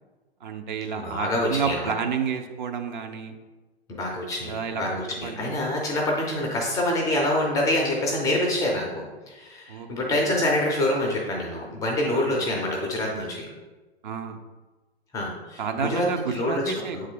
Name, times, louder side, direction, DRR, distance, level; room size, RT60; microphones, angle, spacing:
voice 1, 0.4-3.3 4.4-4.8 5.2-5.5 9.7-10.2 12.1-12.5 14.0-14.4 15.6-17.1, right 6 dB, 45° right, 5 dB, 0.6 m, -30 dB
voice 2, 0.9-1.9 3.9-13.5 15.1-16.6 16.9-17.1, left 1 dB, 10° left, -1 dB, 0.4 m, -26 dB
7.6 x 3.3 x 3.7 m, 1.2 s
figure-of-eight pair, 110°, 32 cm